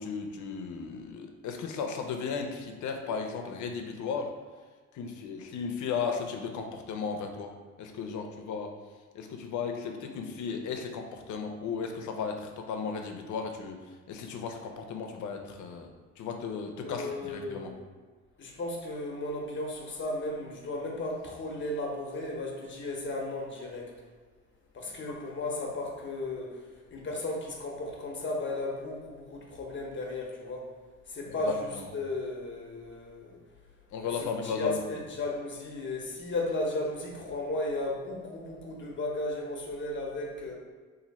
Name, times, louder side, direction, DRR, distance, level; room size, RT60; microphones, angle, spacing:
voice 1, 0.0-4.3 4.9-7.5 7.8-8.7 9.1-13.8 14.1-15.9 16.2-17.7 25.1-25.2 31.5-31.8 33.9-34.8, left 5 dB, 75° left, 4 dB, 0.6 m, -35 dB
voice 2, 16.8-17.8 18.4-23.9 24.7-26.6 26.9-30.7 31.1-33.4 34.4-40.5, left 2 dB, 40° left, -1 dB, 0.9 m, -35 dB
3.0 x 2.6 x 4.1 m, 1.4 s
cardioid pair, 90°, 30 cm